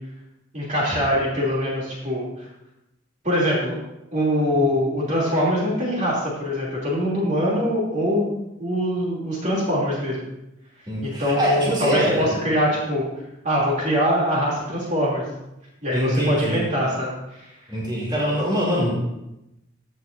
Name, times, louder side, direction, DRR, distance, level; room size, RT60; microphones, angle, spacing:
voice 1, 0.5-2.3 3.2-3.8 4.1-10.3 11.0-13.0 13.4-15.2 15.8-17.5, equal, 40° right, -5 dB, 2.9 m, -23 dB
voice 2, 10.9-12.4 15.9-16.6 17.7-18.9, equal, 25° right, -5 dB, 2.9 m, -23 dB
14.5 x 8.3 x 2.6 m, 0.89 s
head